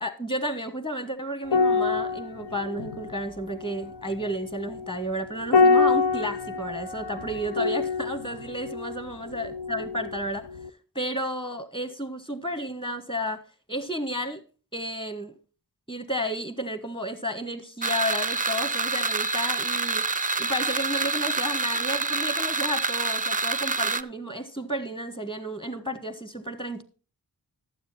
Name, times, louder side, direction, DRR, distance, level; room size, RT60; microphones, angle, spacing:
voice 1, 0.0-10.5 10.9-13.4 13.7-14.4 14.7-15.3 15.9-20.1 20.4-26.8, equal, 15° left, 1.3 m, -32 dB
sound 1, 1.4-10.2 10.5-10.7, left 4 dB, 80° left, 0.7 m, -26 dB
sound 2, 17.8-24.0, right 4 dB, 20° right, 0.4 m, -27 dB
12.0 x 7.8 x 4.3 m
wide cardioid pair, 75°, 40 cm